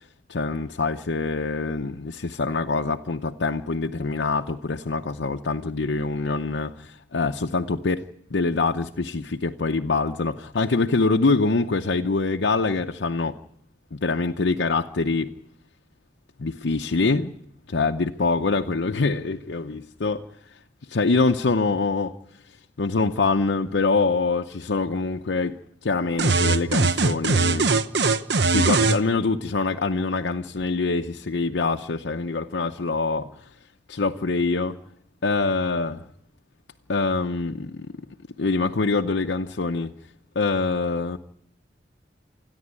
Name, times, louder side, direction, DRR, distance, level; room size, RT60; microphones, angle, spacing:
voice 1, 0.3-8.0 8.3-13.4 13.9-15.3 16.4-17.3 17.7-20.2 20.9-22.2 22.8-27.7 28.5-33.3 33.9-34.8 35.2-35.9 36.9-37.9 38.4-39.9 40.4-41.2, left 3 dB, 85° left, 5 dB, 0.7 m, -24 dB
sound 1, 26.2-29.0, right 4 dB, 70° right, 1.0 m, -20 dB
28.0 x 10.5 x 9.7 m, 0.79 s
head